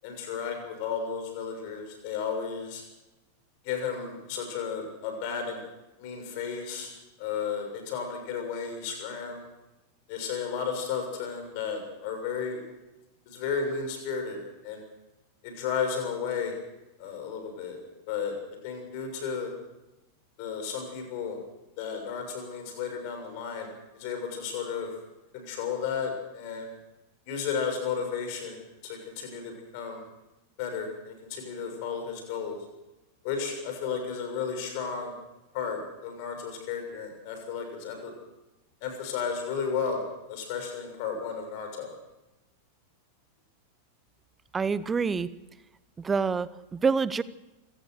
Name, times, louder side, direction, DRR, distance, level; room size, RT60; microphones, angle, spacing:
voice 1, 0.0-2.8 3.6-5.6 6.0-6.9 7.2-9.4 10.1-12.6 13.3-14.4 14.6-14.8 15.4-16.5 17.0-17.8 18.1-18.3 18.6-19.5 20.4-21.4 21.8-23.7 24.0-24.9 25.3-26.7 27.3-30.0 30.6-32.6 33.2-35.2 35.5-38.1 38.8-40.0 40.3-42.0, left 6 dB, 45° left, 5 dB, 6.7 m, -33 dB
voice 2, 44.5-45.3 46.0-47.2, right 5 dB, 15° right, 18 dB, 0.9 m, -27 dB
25.5 x 18.0 x 6.6 m, 0.99 s
figure-of-eight pair, 90°, 0 cm